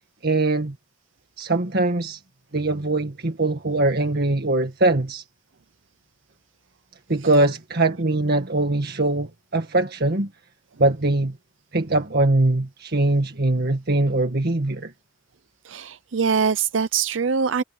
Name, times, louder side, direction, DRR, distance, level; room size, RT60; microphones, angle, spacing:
voice 1, 0.2-0.8 1.4-2.2 2.5-5.2 7.1-10.3 10.8-11.4 11.7-14.9, right 2 dB, 55° right, 1.8 m, -22 dB
voice 2, 15.7-17.6, right 6 dB, 70° right, 0.6 m, -23 dB
head